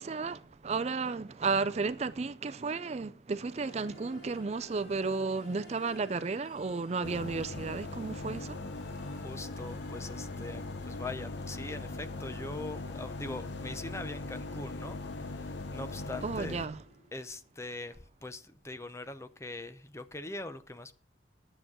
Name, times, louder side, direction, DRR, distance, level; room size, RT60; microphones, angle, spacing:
voice 1, 0.0-8.6 16.2-16.8, right 4 dB, 35° right, 0.4 m, -33 dB
sound 1, 3.4-17.3, left 2 dB, 50° left, 5.8 m, -56 dB
sound 2, 7.0-16.7, left 2 dB, 75° left, 0.9 m, -40 dB
voice 2, 9.1-15.0 15.3-16.6 17.1-20.9, left 2 dB, 15° left, 0.6 m, -42 dB
10.0 x 7.9 x 6.0 m
head